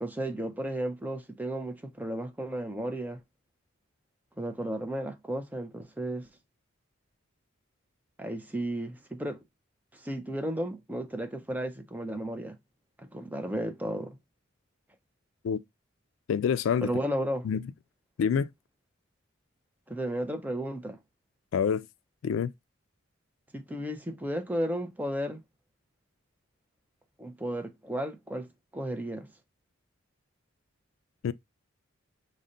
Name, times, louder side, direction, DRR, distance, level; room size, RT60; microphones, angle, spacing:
voice 1, 0.0-3.2 4.4-6.3 8.2-9.4 9.9-12.6 13.0-14.2 16.8-17.5 19.9-21.0 23.5-25.4 27.2-28.5 28.7-29.3, right 1 dB, 10° right, 0.4 m, -33 dB
voice 2, 16.3-16.9 17.4-17.6 18.2-18.5 21.5-21.8 22.2-22.5 31.2-31.3, left 7 dB, 75° left, 0.3 m, -26 dB
5.2 x 2.2 x 3.7 m
head